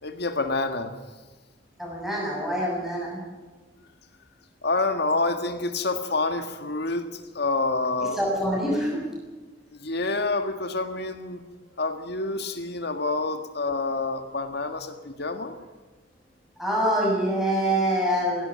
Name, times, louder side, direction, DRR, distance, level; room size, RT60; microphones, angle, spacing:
voice 1, 0.0-0.9 4.6-8.2 8.7-8.8 9.7-11.4 11.8-15.6, left 3 dB, 65° left, 7 dB, 1.8 m, -28 dB
voice 2, 1.8-3.2 8.2-9.0 16.6-18.5, equal, ahead, -4 dB, 7.1 m, -25 dB
18.0 x 16.5 x 8.9 m, 1.3 s
head